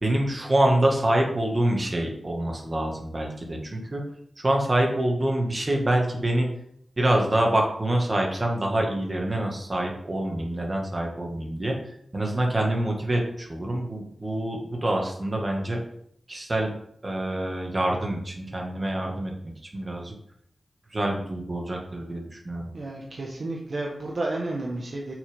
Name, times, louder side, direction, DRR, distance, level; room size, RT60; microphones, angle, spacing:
voice 1, 0.0-4.0 4.4-6.5 7.0-11.7 12.1-15.8 16.3-16.7 17.0-19.3 19.7-20.1 20.9-22.7, right 1 dB, 30° right, 0 dB, 2.0 m, -26 dB
voice 2, 22.7-25.1, right 2 dB, 50° right, -2 dB, 1.4 m, -31 dB
8.2 x 6.4 x 3.7 m, 0.71 s
wide cardioid pair, 90°, 0 cm